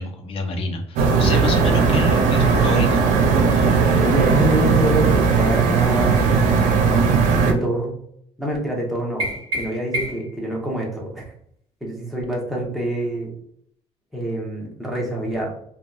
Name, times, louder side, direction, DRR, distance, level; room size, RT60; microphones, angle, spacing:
voice 1, 0.0-3.0, left 3 dB, 50° left, 4 dB, 0.6 m, -28 dB
sound 1, 1.0-7.5, right 5 dB, 80° right, 0.5 m, -17 dB
voice 2, 4.0-6.3 7.4-8.0 8.4-9.3 9.6-11.3 11.8-13.3 14.1-15.5, right 1 dB, ahead, -3 dB, 0.8 m, -26 dB
sound 2, 9.2-10.4, equal, 45° right, 1.3 m, -28 dB
2.6 x 2.2 x 2.3 m, 0.69 s
cardioid pair, 115°, 13 cm